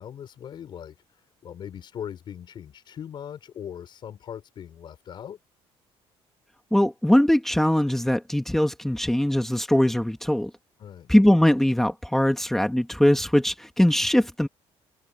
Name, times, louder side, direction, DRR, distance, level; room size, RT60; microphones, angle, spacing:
voice 1, 0.0-5.4 10.8-11.1, left 9 dB, 45° left, 4.4 m, -40 dB
voice 2, 6.7-10.5 11.1-14.5, left 1 dB, 5° left, 1.4 m, -21 dB
cardioid pair, 150°, 11 cm